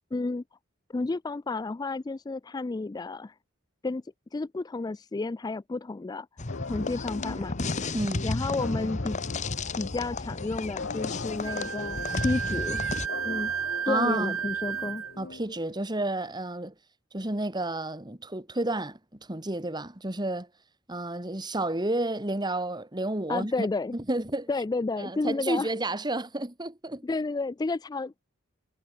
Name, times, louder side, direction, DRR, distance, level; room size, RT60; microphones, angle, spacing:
voice 1, 0.1-0.4 0.9-3.3 3.8-4.0 4.3-6.3 6.7-7.6 8.2-9.2 9.7-12.8 13.2-13.5 13.9-15.0 23.3-23.9 24.5-25.7 27.0-28.3, left 3 dB, 20° left, 0.3 m, -31 dB
sound 1, 6.4-13.1, left 3 dB, 35° left, 1.1 m, -33 dB
sound 2, 6.5-15.9, left 4 dB, 60° left, 0.9 m, -41 dB
voice 2, 7.9-8.2 13.9-14.4 15.2-16.7 17.1-19.0 19.3-20.5 20.9-23.7 23.9-24.5 25.0-27.0, right 2 dB, 20° right, 2.1 m, -31 dB
Wind instrument woodwind instrument, 11.4-15.1, right 8 dB, 90° right, 0.8 m, -32 dB
head